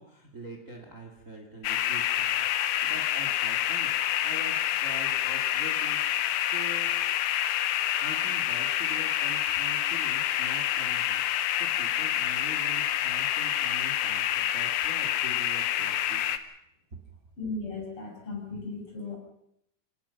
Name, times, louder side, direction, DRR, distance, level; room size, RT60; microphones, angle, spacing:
voice 1, 0.0-2.4 2.8-3.9 4.2-6.9 8.0-16.3, right 1 dB, 35° right, 3 dB, 1.3 m, -44 dB
sound 1, 1.6-16.4, left 12 dB, 75° left, 2.6 m, -27 dB
voice 2, 17.4-19.2, left 3 dB, 25° left, 1 dB, 7.0 m, -36 dB
27.0 x 18.5 x 5.8 m, 0.74 s
omnidirectional pair, 5.8 m